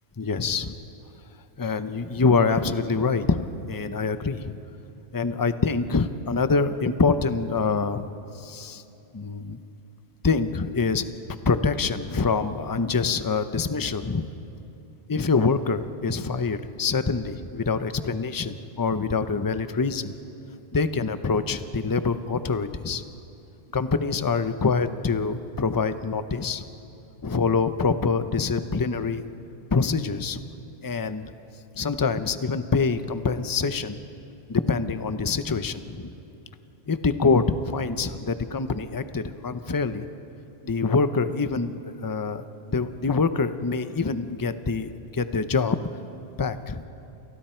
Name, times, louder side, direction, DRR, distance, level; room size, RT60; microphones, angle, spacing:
voice 1, 0.2-0.8 1.6-4.6 5.1-8.1 8.3-8.8 9.1-9.6 10.2-11.1 11.5-14.3 15.1-20.1 20.7-23.0 23.7-26.6 27.2-29.2 29.7-30.4 30.8-31.3 31.8-34.0 34.5-36.1 36.9-40.0 40.6-45.8 46.4-46.8, left 4 dB, 20° left, 10 dB, 0.7 m, -25 dB
29.5 x 28.5 x 4.5 m, 2.8 s
omnidirectional pair, 1.1 m